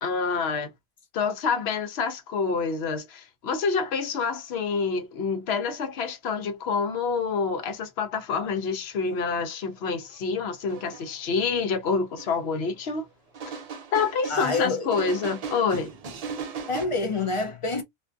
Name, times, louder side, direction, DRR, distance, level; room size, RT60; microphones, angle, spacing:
voice 1, 0.0-0.7 1.1-13.1 13.9-15.9, left 5 dB, 85° left, 0.9 m, -27 dB
sound 1, 10.1-10.2 10.7-11.1 12.2-12.3 13.3-16.9, right 5 dB, 50° right, 0.5 m, -37 dB
voice 2, 14.3-14.9 16.7-17.8, left 3 dB, 40° left, 0.5 m, -27 dB
2.5 x 2.5 x 2.2 m
omnidirectional pair, 1.0 m